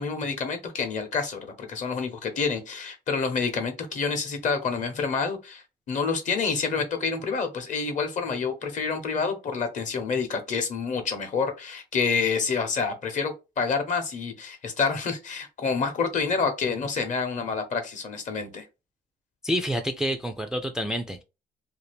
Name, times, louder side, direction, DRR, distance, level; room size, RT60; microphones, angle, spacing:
voice 1, 0.0-18.7, left 5 dB, 50° left, 0.9 m, -28 dB
voice 2, 19.4-21.2, equal, 5° right, 0.3 m, -28 dB
2.7 x 2.5 x 3.3 m
cardioid pair, 110°, 17 cm